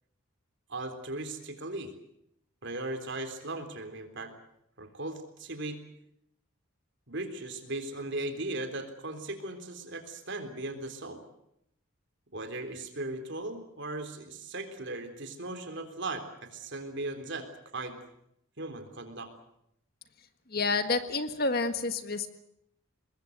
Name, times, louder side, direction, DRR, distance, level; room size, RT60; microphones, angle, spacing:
voice 1, 0.7-1.9 2.6-4.3 4.8-5.8 7.1-11.2 12.3-18.0 18.6-19.3, right 2 dB, 50° right, 7 dB, 3.7 m, -38 dB
voice 2, 20.5-22.3, left 3 dB, 45° left, 9 dB, 1.6 m, -29 dB
24.5 x 21.0 x 8.1 m, 0.77 s
head